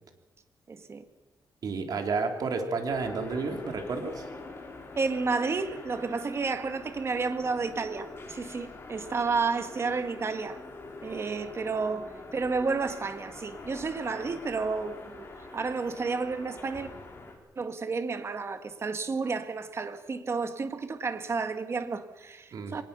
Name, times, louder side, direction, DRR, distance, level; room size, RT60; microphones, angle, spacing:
voice 1, 0.7-1.0 5.0-10.6 11.0-15.3 15.5-16.9 17.6-22.8, right 4 dB, 35° right, 1.8 m, -31 dB
voice 2, 1.6-4.3 22.5-22.8, right 4 dB, 60° right, 3.5 m, -31 dB
sound 1, 2.9-17.4, left 2 dB, 35° left, 4.9 m, -44 dB
24.0 x 19.5 x 6.9 m
cardioid pair, 130°, 7 cm